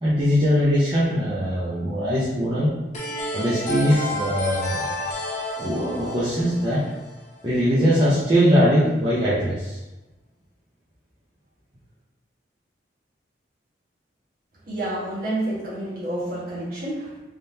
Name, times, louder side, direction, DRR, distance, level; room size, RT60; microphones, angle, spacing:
voice 1, 0.0-2.7 3.3-4.9 5.6-6.8 7.4-9.8, equal, 25° right, -10 dB, 0.7 m, -21 dB
sound 1, 2.9-7.6, left 1 dB, 40° left, 0.6 m, -31 dB
voice 2, 14.7-17.2, right 1 dB, 50° right, -8 dB, 1.4 m, -29 dB
3.7 x 3.3 x 2.7 m, 1.1 s
head